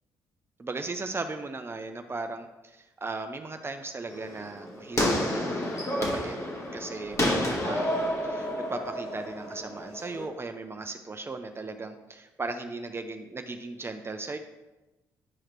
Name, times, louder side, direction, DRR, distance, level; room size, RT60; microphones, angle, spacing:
voice 1, 0.6-5.7 6.0-6.4 6.7-14.4, right 3 dB, 30° right, 6 dB, 0.6 m, -37 dB
sound 1, 4.1-10.3, left 1 dB, 40° left, 1.7 m, -30 dB
10.5 x 4.8 x 3.1 m, 1.1 s
supercardioid pair, 55°, 8 cm